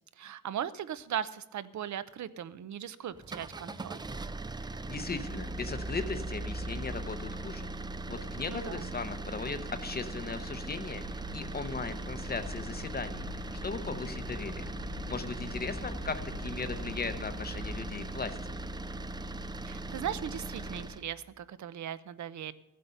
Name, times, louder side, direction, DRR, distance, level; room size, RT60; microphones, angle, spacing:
voice 1, 0.2-4.0 8.5-8.9 19.7-22.5, right 9 dB, 65° right, 15 dB, 0.7 m, -38 dB
sound 1, 3.1-21.0, right 2 dB, 15° right, 0.3 m, -39 dB
voice 2, 4.6-7.7 8.1-13.3 13.6-14.6 15.1-18.4, left 4 dB, 30° left, 9 dB, 0.7 m, -38 dB
sound 2, 11.0-17.9, left 2 dB, 60° left, 1.1 m, -44 dB
15.5 x 7.7 x 5.5 m, 0.95 s
wide cardioid pair, 160°, 31 cm